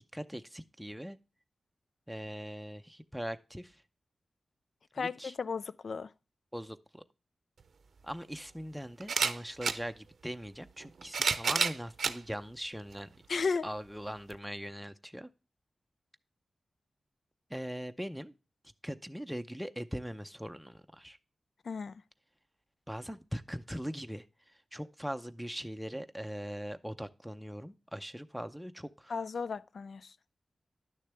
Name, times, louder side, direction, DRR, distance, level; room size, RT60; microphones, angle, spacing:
voice 1, 0.1-1.2 2.1-3.7 5.0-5.3 6.5-7.0 8.0-13.1 13.6-15.3 17.5-18.3 18.8-21.2 22.9-24.2 24.7-29.1, equal, ahead, 0.6 m, -41 dB
voice 2, 5.0-6.1 13.3-13.7 21.7-22.0 29.1-30.1, left 5 dB, 75° left, 0.4 m, -34 dB
sound 1, 7.6-7.7 9.0-9.8 10.8-12.2 12.9-13.0 14.3-14.4, right 5 dB, 80° right, 0.6 m, -30 dB
11.5 x 6.6 x 3.3 m
wide cardioid pair, 115°, 0 cm